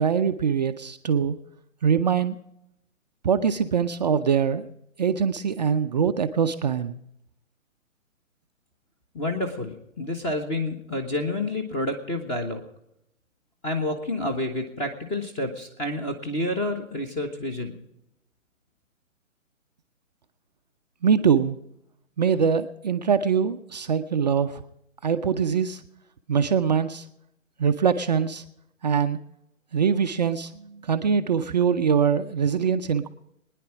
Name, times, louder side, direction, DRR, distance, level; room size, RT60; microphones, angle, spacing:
voice 1, 0.0-1.4 1.8-2.4 3.2-4.7 5.0-7.0 21.0-21.6 22.2-24.6 25.0-25.8 26.3-27.0 27.6-28.4 28.8-29.2 29.7-33.1, right 7 dB, 30° right, 8 dB, 0.5 m, -23 dB
voice 2, 9.1-12.6 13.6-17.7, left 1 dB, 15° left, 5 dB, 1.3 m, -29 dB
22.5 x 10.0 x 4.7 m, 0.80 s
figure-of-eight pair, 140°, 40 cm